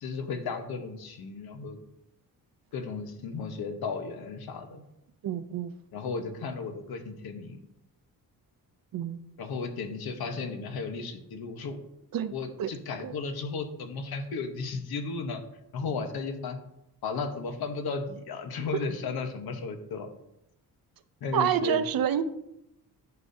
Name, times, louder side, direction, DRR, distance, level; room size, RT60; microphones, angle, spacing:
voice 1, 0.0-1.8 2.7-4.8 5.9-7.6 9.4-11.8 12.3-15.4 15.7-16.6 17.0-20.1 21.2-21.8, left 4 dB, 90° left, 6 dB, 1.1 m, -34 dB
voice 2, 5.2-5.7 8.9-9.2 12.1-12.3 12.6-12.7 13.0-13.1 21.3-22.2, right 9 dB, 70° right, 12 dB, 0.6 m, -27 dB
11.0 x 6.9 x 2.7 m, 0.83 s
wide cardioid pair, 125°, 36 cm